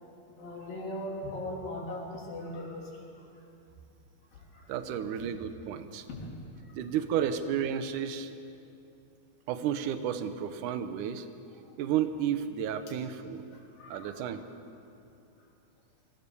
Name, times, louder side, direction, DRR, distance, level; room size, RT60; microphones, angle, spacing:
voice 1, 0.4-3.3 4.3-5.2 6.1-6.9 11.6-11.7 13.5-14.5, left 1 dB, 65° left, -2 dB, 4.9 m, -41 dB
voice 2, 4.7-6.1 6.8-8.3 9.5-11.3 11.8-13.4 13.9-14.4, right 9 dB, 70° right, 10 dB, 2.2 m, -32 dB
24.5 x 17.0 x 7.0 m, 2.6 s
omnidirectional pair, 4.3 m